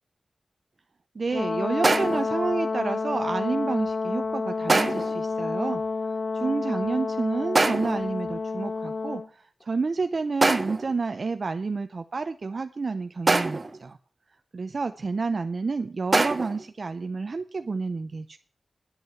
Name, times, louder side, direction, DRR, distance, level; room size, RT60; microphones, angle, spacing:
voice 1, 1.2-5.8 6.3-14.0 14.5-18.4, right 4 dB, 50° right, 9 dB, 0.6 m, -29 dB
Brass instrument, 1.3-9.3, left 4 dB, 50° left, 0.6 m, -29 dB
sound 1, 1.8-2.4 4.7-5.2 7.6-8.1 10.4-10.9 13.3-13.8 16.1-16.6, right 3 dB, 35° right, 0.9 m, -24 dB
10.5 x 8.0 x 7.7 m, 0.43 s
wide cardioid pair, 120°, 0 cm